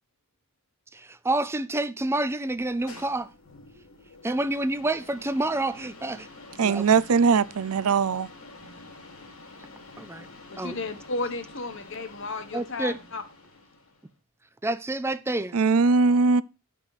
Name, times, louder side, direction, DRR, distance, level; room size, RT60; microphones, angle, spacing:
voice 1, 0.9-3.3 4.2-6.3 6.6-7.0 10.0-10.3 10.6-10.8 12.5-13.0 14.6-15.6, right 2 dB, 10° right, 0.4 m, -28 dB
sound 1, 2.5-14.1, left 2 dB, 80° left, 3.0 m, -48 dB
voice 2, 6.6-8.3 15.5-16.4, right 5 dB, 90° right, 0.5 m, -20 dB
voice 3, 10.5-13.2, left 3 dB, 60° left, 1.3 m, -33 dB
9.8 x 5.9 x 4.8 m
head